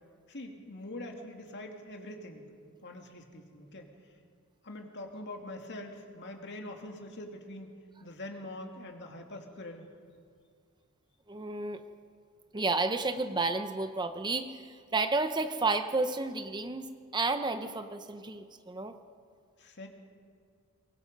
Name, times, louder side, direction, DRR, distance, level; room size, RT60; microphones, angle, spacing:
voice 1, 0.3-2.5 2.8-3.9 4.6-7.7 8.0-9.9 19.6-19.9, left 1 dB, 55° left, 3 dB, 2.4 m, -44 dB
voice 2, 11.3-11.8 12.5-16.9 17.1-19.0, right 3 dB, 20° right, 8 dB, 0.8 m, -31 dB
23.5 x 23.5 x 5.4 m, 2.2 s
head